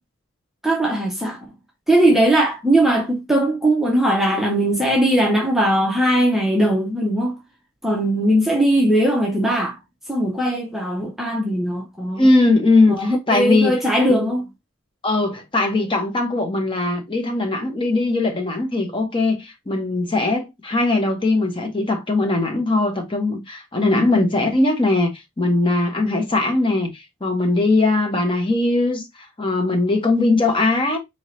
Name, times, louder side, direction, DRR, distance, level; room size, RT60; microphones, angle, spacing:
voice 1, 0.6-1.5 1.9-7.4 7.8-9.8 10.1-12.3 12.9-14.5 23.9-24.2, right 1 dB, ahead, 0.7 m, -19 dB
voice 2, 12.2-13.8 14.1-14.3 15.0-31.0, left 2 dB, 25° left, 0.9 m, -20 dB
4.5 x 2.8 x 3.1 m
head